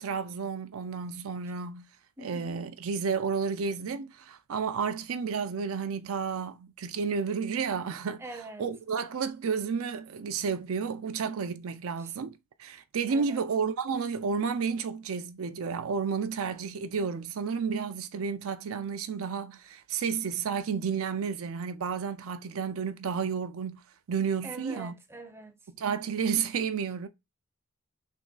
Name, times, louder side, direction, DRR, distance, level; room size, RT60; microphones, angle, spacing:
voice 1, 0.0-1.9 2.2-8.2 8.6-12.3 12.6-23.8 24.1-24.9 25.8-27.1, right 6 dB, 70° right, 0.5 m, -31 dB
voice 2, 2.2-2.6 8.2-8.7 11.2-11.6 12.0-12.1 13.1-13.4 24.4-25.6, right 2 dB, 10° right, 0.6 m, -44 dB
3.6 x 3.1 x 3.8 m
head